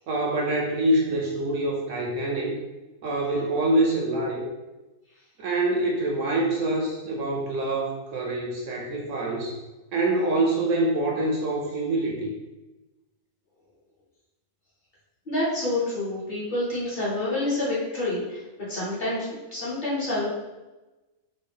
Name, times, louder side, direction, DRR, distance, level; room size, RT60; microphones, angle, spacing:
voice 1, 0.1-2.6 3.0-4.4 5.4-9.6 9.9-12.3, right 2 dB, 70° right, 0 dB, 0.8 m, -25 dB
voice 2, 15.3-18.4 18.7-20.3, left 1 dB, 40° left, -8 dB, 0.9 m, -28 dB
3.8 x 2.2 x 3.4 m, 1.1 s
omnidirectional pair, 1.5 m